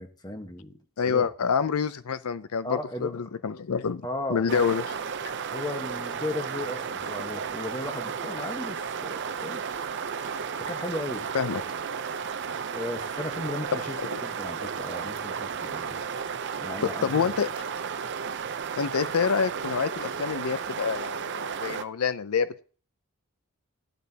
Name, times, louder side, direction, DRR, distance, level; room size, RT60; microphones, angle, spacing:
voice 1, 0.0-1.3 2.6-3.2 4.0-4.7 5.5-9.6 10.6-11.2 12.7-16.0 16.6-17.3, left 1 dB, 20° left, 6 dB, 1.3 m, -36 dB
voice 2, 1.0-4.8 11.3-11.6 16.8-17.5 18.8-22.6, left 6 dB, 75° left, 14 dB, 0.5 m, -27 dB
sound 1, 4.5-21.8, right 6 dB, 55° right, 0.7 m, -33 dB
15.0 x 11.5 x 2.9 m, 0.39 s
head